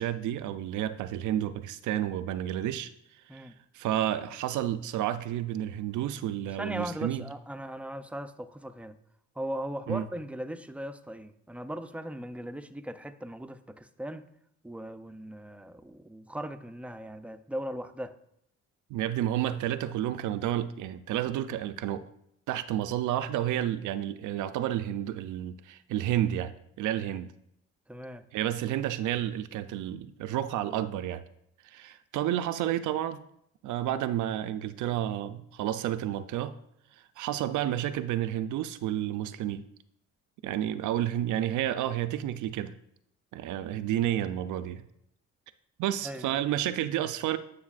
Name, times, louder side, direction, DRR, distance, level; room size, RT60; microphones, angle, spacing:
voice 1, 0.0-3.5 3.7-7.3 9.9-10.0 18.9-22.0 22.5-26.5 26.8-27.3 28.3-31.2 31.6-33.2 33.6-36.5 36.9-39.6 40.4-42.7 43.3-44.8 45.8-47.4, right 12 dB, 80° right, 0.5 m, -31 dB
voice 2, 6.6-8.9 9.4-14.3 14.6-18.2 27.9-28.2 46.0-46.4, equal, 5° right, 0.4 m, -38 dB
9.5 x 6.5 x 2.4 m
cardioid pair, 90°, 30 cm